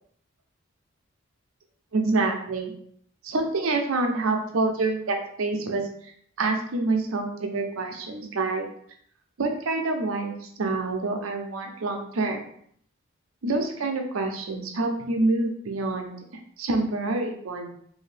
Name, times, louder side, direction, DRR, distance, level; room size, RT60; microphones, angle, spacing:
voice 1, 1.9-2.7 3.2-5.9 6.4-8.7 9.4-12.4 13.4-16.1 16.6-17.7, right 3 dB, 75° right, 3 dB, 0.6 m, -27 dB
2.7 x 2.7 x 3.2 m, 0.64 s
head